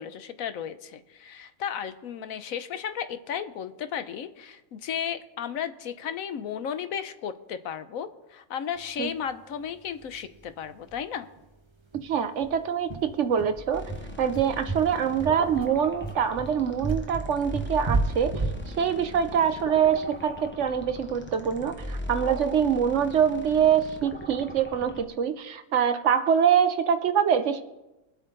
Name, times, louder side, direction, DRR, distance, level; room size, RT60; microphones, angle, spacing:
voice 1, 0.0-11.3, left 8 dB, 75° left, 11 dB, 1.1 m, -34 dB
sound 1, 10.0-10.1 10.4-10.5 10.8-11.0 11.4-11.5 11.9-20.4, right 3 dB, 20° right, 1.2 m, -32 dB
voice 2, 12.0-13.9 14.2-18.3 18.8-27.6, right 8 dB, 60° right, 11 dB, 0.9 m, -24 dB
sound 2, 13.7-25.0, left 1 dB, 10° left, 0.9 m, -40 dB
22.5 x 8.1 x 3.8 m, 1.0 s
omnidirectional pair, 1.5 m